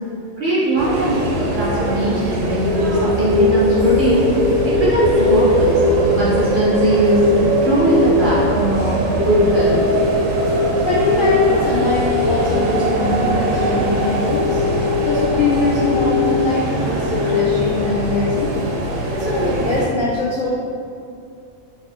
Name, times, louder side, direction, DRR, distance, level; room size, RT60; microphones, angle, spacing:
voice 1, 0.4-4.3 4.6-9.8, right 1 dB, 55° right, -7 dB, 0.5 m, -20 dB
sound 1, 0.8-19.9, right 2 dB, 75° right, 0.9 m, -22 dB
sound 2, 2.6-18.3, left 5 dB, 60° left, 0.9 m, -21 dB
voice 2, 10.5-14.6 15.0-18.6 19.1-20.5, left 2 dB, 75° left, -6 dB, 0.4 m, -22 dB
2.7 x 2.4 x 4.2 m, 2.3 s
omnidirectional pair, 1.4 m